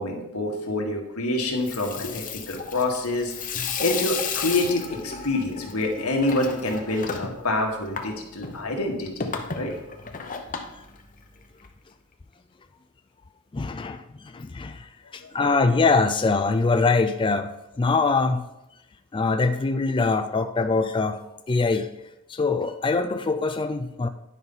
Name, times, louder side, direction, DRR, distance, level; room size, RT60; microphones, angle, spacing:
voice 1, 0.0-3.3 3.8-9.7 15.2-15.3, left 2 dB, 90° left, 1 dB, 1.9 m, -27 dB
Water tap faucet / Sink (filling or washing), 1.5-11.7, left 5 dB, 40° left, 0.9 m, -34 dB
voice 2, 13.5-17.5 17.8-18.4 19.1-21.9 22.3-24.1, left 4 dB, 25° left, 9 dB, 0.3 m, -23 dB
10.5 x 5.6 x 5.5 m, 0.92 s
head